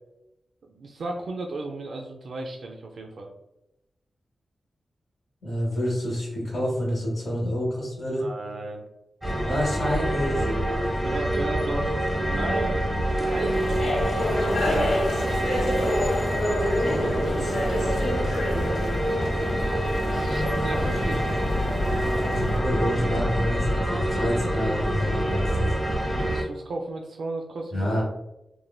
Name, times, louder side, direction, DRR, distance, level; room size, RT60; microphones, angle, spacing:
voice 1, 0.7-3.3 8.2-8.8 11.0-12.0 12.3-12.8 13.3-15.0 15.6-16.3 16.8-18.0 20.0-21.2 26.0-27.9, right 2 dB, 80° right, 1 dB, 0.3 m, -35 dB
voice 2, 5.4-8.3 9.5-10.5 20.8-21.3 22.0-25.7 27.7-28.0, equal, 55° left, -5 dB, 0.8 m, -28 dB
sound 1, 9.2-26.4, equal, 5° left, 0.8 m, -26 dB
sound 2, 13.0-22.6, left 1 dB, 90° left, 0.7 m, -29 dB
3.1 x 2.1 x 2.2 m, 0.92 s
wide cardioid pair, 150°, 0 cm